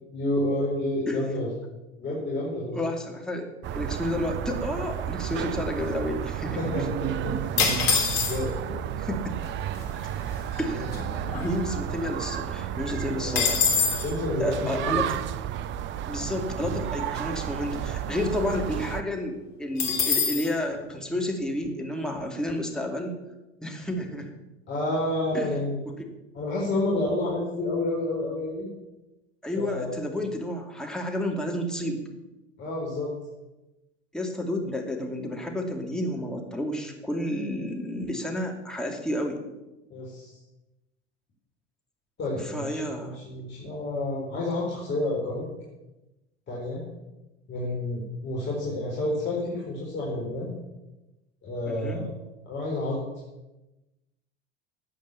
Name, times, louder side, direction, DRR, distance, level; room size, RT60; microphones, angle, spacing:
voice 1, 0.0-1.5 2.0-2.8 6.4-7.4 8.3-8.8 10.7-10.9 13.1-15.1 24.7-25.8 26.3-28.7 29.6-30.0 32.6-33.1 39.9-40.4 42.2-45.5 46.5-46.8 47.5-50.5 51.4-52.1 52.5-53.0, left 1 dB, 30° left, -4 dB, 4.3 m, -30 dB
voice 2, 2.7-6.8 9.0-9.3 10.6-13.9 14.4-15.2 16.1-23.2 23.6-24.3 25.3-25.5 26.0-26.1 29.4-32.0 34.1-39.4 42.4-43.2 51.7-52.0, left 1 dB, ahead, 1 dB, 2.6 m, -31 dB
sound 1, 3.6-19.0, right 10 dB, 30° right, 0.7 m, -32 dB
sound 2, 7.6-8.7 9.5-9.6 9.7-10.1 10.5-12.0 12.3-12.4 12.7-14.1 19.8-20.5, left 5 dB, 55° left, 3.1 m, -25 dB
14.0 x 8.9 x 7.1 m, 1.0 s
figure-of-eight pair, 85°, 37 cm